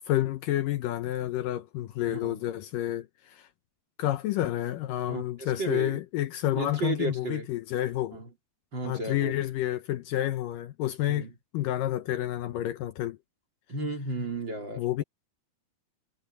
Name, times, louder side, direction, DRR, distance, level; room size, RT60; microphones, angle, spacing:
voice 1, 0.1-3.5 4.0-8.2 8.8-11.3 11.5-13.2 14.8-15.0, left 13 dB, 75° left, 2.3 m, -29 dB
voice 2, 2.1-2.4 5.1-6.0 6.6-7.5 8.1-8.3 8.7-9.3 11.1-11.3 13.7-14.9, right 3 dB, 30° right, 3.8 m, -33 dB
omnidirectional pair, 4.2 m